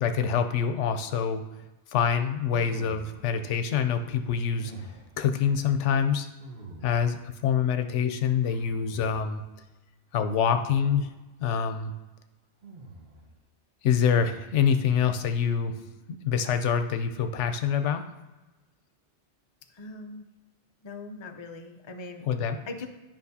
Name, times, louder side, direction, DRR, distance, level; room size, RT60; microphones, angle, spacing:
voice 1, 0.0-1.4 1.9-4.7 5.2-6.3 6.8-9.4 10.1-11.1 11.4-11.9 13.8-15.8 16.2-18.0 22.3-22.6, left 7 dB, 85° left, 8 dB, 0.9 m, -25 dB
sound 1, 2.5-3.4 4.5-5.2 6.4-7.2 8.4-9.4 10.5-11.0 12.6-13.3, right 2 dB, 55° right, 1.2 m, -45 dB
voice 2, 19.7-20.2 20.8-22.2 22.7-22.9, left 3 dB, 35° left, 5 dB, 0.5 m, -40 dB
10.5 x 5.3 x 2.7 m, 1.1 s
omnidirectional pair, 1.2 m